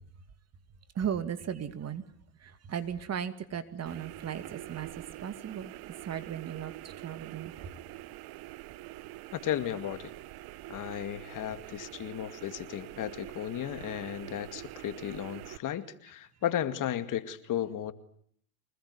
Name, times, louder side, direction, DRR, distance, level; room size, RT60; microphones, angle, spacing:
voice 1, 0.9-2.0 2.4-7.7 10.9-11.0 11.6-11.7, right 8 dB, 35° right, 11 dB, 2.5 m, -37 dB
sound 1, 3.9-15.6, right 17 dB, 55° right, 1.1 m, -45 dB
voice 2, 9.3-10.1 10.7-17.9, left 11 dB, 45° left, 11 dB, 2.3 m, -34 dB
25.5 x 20.0 x 9.7 m, 0.63 s
supercardioid pair, 105°, 44 cm